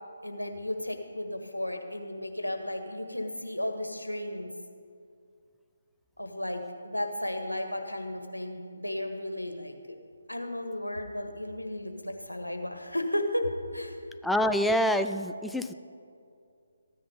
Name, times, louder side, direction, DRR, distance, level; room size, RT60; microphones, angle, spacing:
voice 1, 0.2-4.5 6.2-10.0 10.3-14.0, left 1 dB, 90° left, 5 dB, 1.6 m, -34 dB
voice 2, 14.2-15.7, equal, ahead, 8 dB, 0.4 m, -26 dB
14.5 x 9.7 x 5.3 m, 2.4 s
figure-of-eight pair, 145°, 0 cm